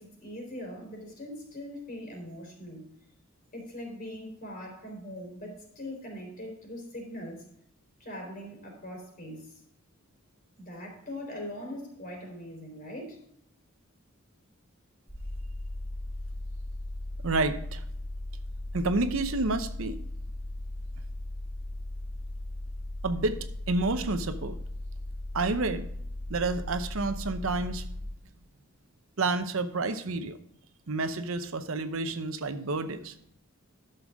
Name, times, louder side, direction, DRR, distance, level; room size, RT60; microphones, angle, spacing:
voice 1, 0.0-2.8 3.5-7.4 8.0-9.6 10.6-13.2, left 1 dB, 45° left, 1 dB, 3.9 m, -41 dB
sound 1, 15.1-28.0, left 1 dB, 10° left, 2.0 m, -37 dB
voice 2, 17.2-17.8 18.7-20.0 23.0-24.6 25.3-25.9 26.3-27.9 29.2-30.4 30.9-33.2, right 3 dB, 70° right, 10 dB, 0.8 m, -29 dB
12.0 x 6.8 x 3.5 m, 0.71 s
head